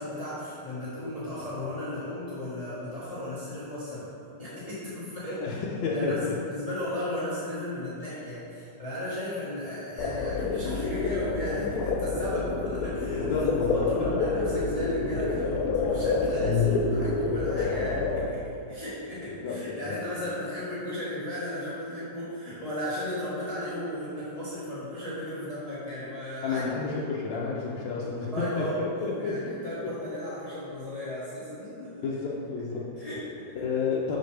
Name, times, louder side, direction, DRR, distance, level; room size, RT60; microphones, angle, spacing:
voice 1, 0.0-4.1 4.4-5.6 5.8-26.6 28.3-32.0 33.0-33.6, left 1 dB, 25° left, -11 dB, 1.2 m, -35 dB
voice 2, 5.4-6.3 13.1-14.1 19.4-20.0 26.4-29.9 32.0-33.1 33.6-34.2, left 4 dB, 85° left, -4 dB, 1.4 m, -31 dB
sound 1, 10.0-18.3, left 4 dB, 70° left, 1.0 m, -28 dB
6.5 x 6.1 x 3.3 m, 2.7 s
omnidirectional pair, 2.0 m